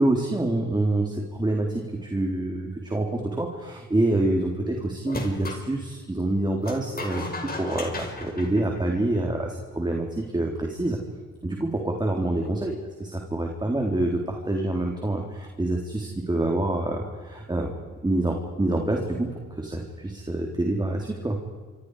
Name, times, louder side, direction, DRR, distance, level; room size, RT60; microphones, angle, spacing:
voice 1, 0.0-11.0 11.4-12.8 13.0-17.7 18.0-21.4, right 2 dB, 15° right, 1 dB, 3.7 m, -26 dB
sound 1, 5.1-5.6 6.6-9.3, left 2 dB, 30° left, 5.4 m, -35 dB
28.5 x 26.0 x 5.0 m, 1.5 s
cardioid pair, 90°, 30 cm